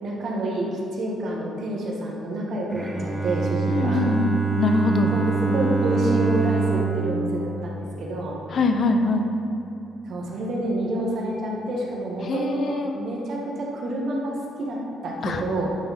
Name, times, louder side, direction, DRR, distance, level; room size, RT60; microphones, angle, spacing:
voice 1, 0.0-4.1 5.1-8.4 10.0-15.7, right 1 dB, 65° right, -2 dB, 1.6 m, -28 dB
Bowed string instrument, 2.7-8.7, right 4 dB, 10° right, 1.1 m, -25 dB
voice 2, 3.7-5.1 8.5-9.3 12.2-12.9 15.2-15.4, left 3 dB, 55° left, 5 dB, 0.7 m, -23 dB
10.0 x 4.1 x 5.2 m, 2.8 s
cardioid pair, 90°, 0 cm